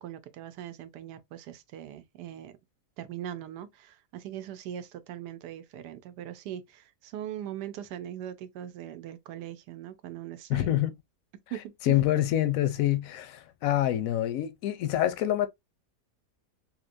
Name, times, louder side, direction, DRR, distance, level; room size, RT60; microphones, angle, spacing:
voice 1, 0.0-2.5 3.0-10.8 11.5-12.0, right 11 dB, 85° right, 1.2 m, -40 dB
voice 2, 10.5-10.9 11.8-15.5, left 13 dB, 70° left, 0.8 m, -26 dB
3.6 x 2.8 x 2.5 m
omnidirectional pair, 1.7 m